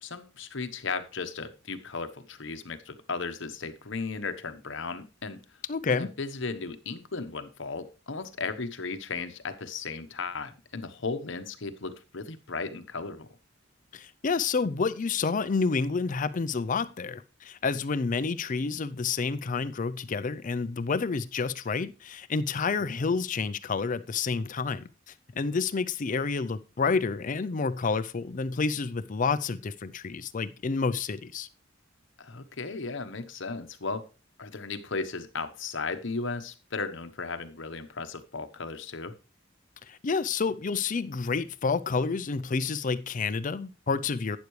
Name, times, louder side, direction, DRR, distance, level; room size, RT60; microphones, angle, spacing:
voice 1, 0.0-5.4 5.9-13.3 22.9-23.0 32.2-34.0 34.4-39.1, left 4 dB, 65° left, 1.1 m, -35 dB
voice 2, 5.7-6.1 13.9-31.5 39.8-44.4, left 4 dB, 40° left, 0.5 m, -29 dB
12.0 x 9.4 x 3.2 m
head